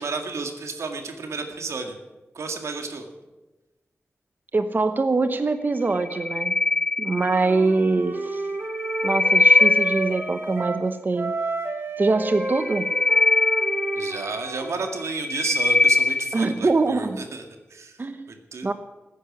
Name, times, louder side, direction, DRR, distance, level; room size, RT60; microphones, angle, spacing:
voice 1, 0.0-2.0 2.3-3.1 13.9-17.4 17.7-18.0 18.3-18.7, right 4 dB, 90° right, 5 dB, 2.1 m, -32 dB
voice 2, 4.5-6.5 7.0-8.4 9.0-11.3 12.0-12.9 16.3-17.2 18.0-18.3 18.6-18.7, right 3 dB, 40° right, 10 dB, 1.0 m, -23 dB
sound 1, 6.0-7.6 8.6-10.4 12.4-14.5 15.0-16.5, left 3 dB, 20° left, 0.5 m, -21 dB
Wind instrument woodwind instrument, 7.1-10.9 11.1-15.1, right 3 dB, 60° right, 2.4 m, -31 dB
14.5 x 9.9 x 9.9 m, 1.1 s
wide cardioid pair, 80°, 5 cm